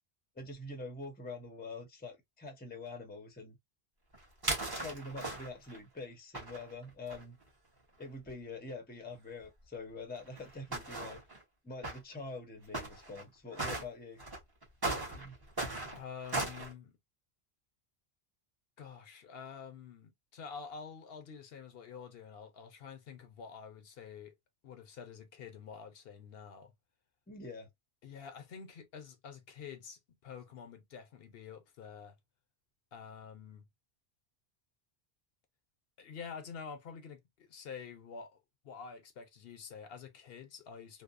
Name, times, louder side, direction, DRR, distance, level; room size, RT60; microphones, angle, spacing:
voice 1, 0.4-3.6 4.7-7.4 8.0-11.2 11.6-14.2 15.1-15.4 27.3-27.7, left 3 dB, 10° left, 0.6 m, -45 dB
sound 1, 4.1-5.8 6.3-7.2 8.0-8.1 8.3-8.4 9.4-9.5 10.2-11.4 11.8-12.0 12.7-13.2 13.5-13.8 14.2-16.7, right 2 dB, 25° right, 0.9 m, -37 dB
voice 2, 15.8-17.0 18.8-24.4 24.6-26.7 28.0-32.2 32.9-33.7 36.0-38.4 38.6-41.0, left 6 dB, 70° left, 0.8 m, -48 dB
2.8 x 2.0 x 2.4 m
omnidirectional pair, 1.1 m